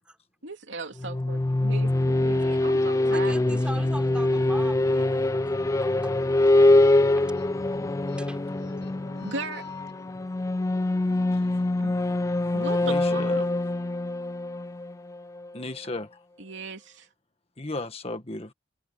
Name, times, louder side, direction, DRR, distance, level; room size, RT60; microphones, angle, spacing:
voice 1, 0.4-3.9 9.2-9.6 11.8-11.9 12.5-13.5 16.4-17.1, right 3 dB, 80° right, 2.9 m, -37 dB
sound 1, 1.0-15.6, left 2 dB, 15° left, 0.3 m, -24 dB
voice 2, 3.0-6.5 7.1-7.2 8.2-8.4, right 1 dB, 5° right, 4.5 m, -41 dB
sound 2, 3.2-14.9, left 1 dB, 85° left, 2.1 m, -50 dB
sound 3, 6.8-7.0 7.4-9.9, left 5 dB, 65° left, 7.3 m, -57 dB
voice 3, 12.8-13.4 15.5-16.2 17.6-18.5, left 2 dB, 30° left, 1.6 m, -35 dB
head